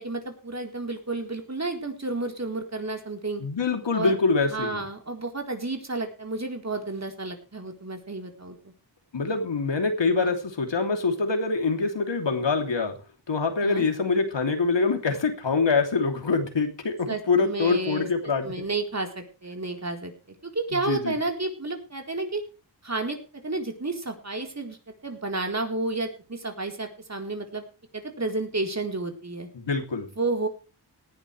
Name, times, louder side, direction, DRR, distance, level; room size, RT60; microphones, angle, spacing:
voice 1, 0.0-3.4 3.9-4.2 4.5-8.7 10.2-10.3 13.6-13.8 17.1-18.1 18.4-20.1 20.4-22.4 22.8-24.8 25.0-27.6 27.9-29.5 30.2-30.5, right 3 dB, 40° right, 4 dB, 4.1 m, -31 dB
voice 2, 3.4-4.8 9.1-12.9 13.3-18.5 20.9-21.2 29.5-30.1, left 4 dB, 85° left, 5 dB, 3.1 m, -25 dB
18.5 x 11.0 x 3.4 m, 0.33 s
wide cardioid pair, 80°, 43 cm